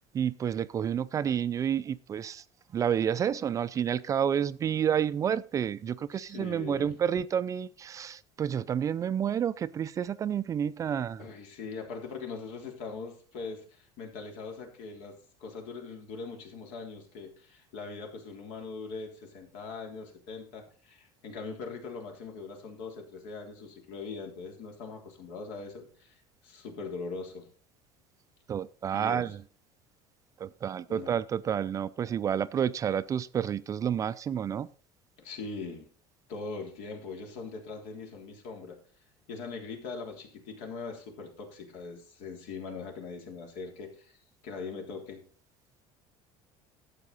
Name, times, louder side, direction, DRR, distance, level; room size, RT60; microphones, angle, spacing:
voice 1, 0.1-2.4 2.7-11.2 28.5-29.4 30.4-34.7, right 8 dB, 30° right, 16 dB, 0.4 m, -30 dB
voice 2, 6.1-7.0 11.2-15.1 15.4-27.5 28.9-29.3 30.9-31.2 35.2-35.9 36.3-38.8 39.3-44.2 44.4-45.2, left 4 dB, 75° left, 2 dB, 3.5 m, -41 dB
12.0 x 8.2 x 4.1 m, 0.39 s
cardioid pair, 135°, 11 cm